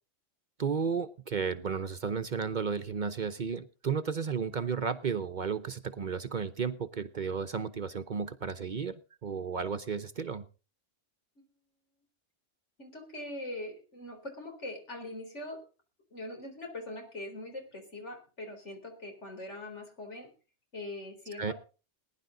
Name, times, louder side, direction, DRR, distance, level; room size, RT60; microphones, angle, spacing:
voice 1, 0.6-10.4 21.4-21.5, right 6 dB, 45° right, 10 dB, 0.8 m, -33 dB
voice 2, 12.8-15.6 16.1-20.3 20.7-21.5, left 1 dB, 75° left, 3 dB, 4.4 m, -42 dB
20.0 x 10.5 x 3.8 m, 0.34 s
omnidirectional pair, 1.2 m